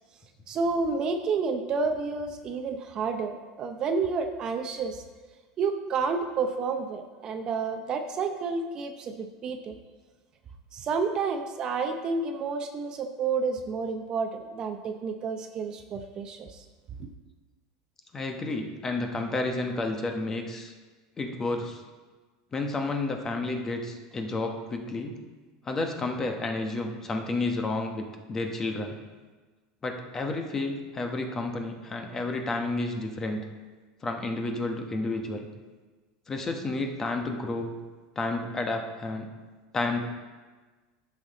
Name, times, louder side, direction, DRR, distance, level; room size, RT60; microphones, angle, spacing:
voice 1, 0.5-5.0 5.6-9.8 10.7-16.6, right 4 dB, 35° right, 6 dB, 0.7 m, -30 dB
voice 2, 18.1-20.7 21.2-21.8 22.5-25.2 25.6-29.0 29.8-33.4 34.0-35.5 36.3-37.7 38.2-39.3 39.7-40.1, left 2 dB, 20° left, 4 dB, 1.0 m, -31 dB
11.0 x 6.7 x 4.0 m, 1.3 s
supercardioid pair, 130°, 2 cm